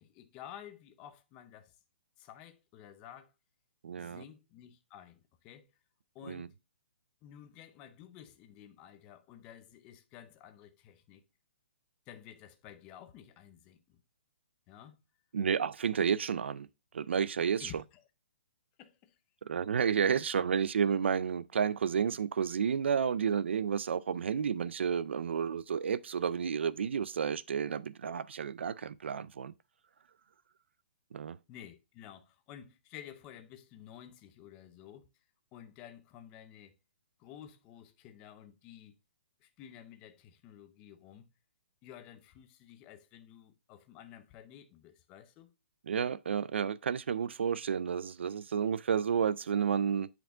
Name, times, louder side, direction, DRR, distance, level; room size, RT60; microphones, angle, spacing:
voice 1, 0.0-1.8 2.2-3.3 4.0-5.7 6.1-6.5 7.2-11.2 12.1-14.0 14.7-15.0 17.6-18.0 18.8-19.2 31.5-35.1 35.5-36.8 37.2-39.0 39.4-41.3 41.8-45.5, left 10 dB, 15° left, 0.5 m, -52 dB
voice 2, 3.8-4.2 6.3-6.5 15.3-16.7 16.9-17.7 19.5-29.5 31.1-31.4 45.9-50.1, right 7 dB, 75° right, 0.4 m, -31 dB
8.1 x 4.4 x 3.8 m
hypercardioid pair, 180°, 6 cm